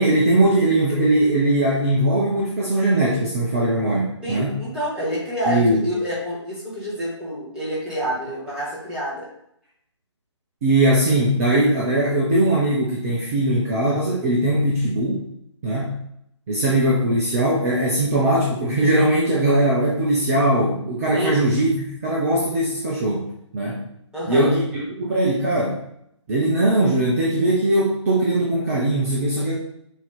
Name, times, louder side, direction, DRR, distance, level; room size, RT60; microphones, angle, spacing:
voice 1, 0.0-4.6 5.5-5.9 10.6-15.2 15.6-16.0 16.5-23.2 23.5-23.8 24.3-25.8 26.3-29.5, right 1 dB, 30° right, -3 dB, 0.9 m, -20 dB
voice 2, 4.2-9.3 21.1-21.4 24.1-24.5, equal, 5° right, -9 dB, 2.1 m, -27 dB
8.0 x 3.1 x 4.2 m, 0.76 s
figure-of-eight pair, 140°, 16 cm